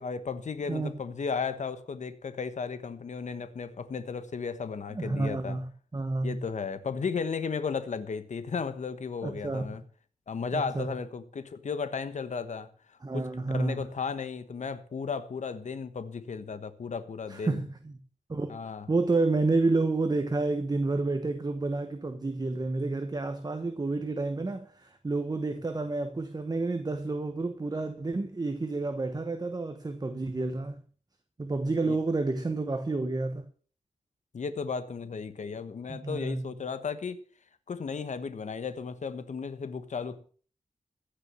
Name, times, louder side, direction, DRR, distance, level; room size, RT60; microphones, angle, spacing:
voice 1, 0.0-5.6 6.2-9.8 10.3-17.6 18.5-18.9 31.8-32.0 34.3-37.2 37.7-40.3, left 5 dB, 65° left, 1.3 m, -35 dB
voice 2, 4.9-6.4 9.2-9.6 10.5-10.9 13.0-13.8 17.3-17.9 18.3-18.5 18.9-30.8 31.4-33.4 35.9-36.5, right 3 dB, 30° right, 1.2 m, -30 dB
15.5 x 6.8 x 7.2 m
wide cardioid pair, 105°, 13 cm